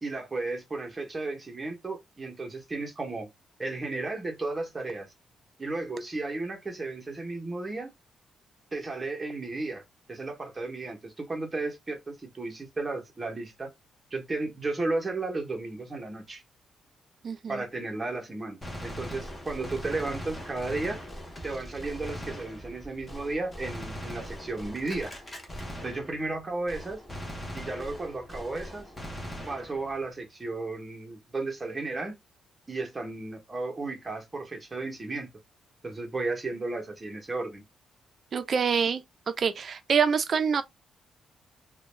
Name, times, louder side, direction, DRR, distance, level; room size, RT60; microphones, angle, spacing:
voice 1, 0.0-3.3 3.6-5.1 5.6-7.9 8.7-9.8 10.1-13.7 14.1-16.4 17.5-21.0 21.4-25.1 25.8-27.0 27.5-28.9 29.5-32.2 32.7-35.3 35.8-37.6, right 3 dB, 20° right, 0.8 m, -34 dB
voice 2, 17.2-17.6 38.3-39.0 39.4-40.6, right 6 dB, 40° right, 0.4 m, -26 dB
Gunshot gunfire, 18.6-26.4 26.7-30.0, equal, 15° left, 0.8 m, -40 dB
2.3 x 2.1 x 3.1 m
cardioid pair, 145°, 0 cm